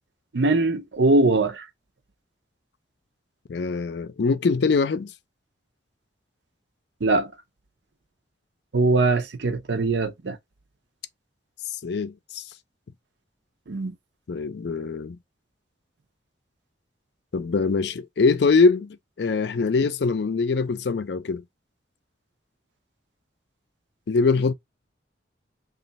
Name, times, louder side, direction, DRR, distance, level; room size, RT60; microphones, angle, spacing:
voice 1, 0.3-1.7 7.0-7.3 8.7-10.4 13.7-13.9, right 2 dB, 70° right, 0.6 m, -21 dB
voice 2, 3.5-5.1 11.7-12.4 14.3-15.2 17.3-21.4 24.1-24.5, left 4 dB, 65° left, 0.4 m, -23 dB
3.1 x 2.4 x 4.0 m
head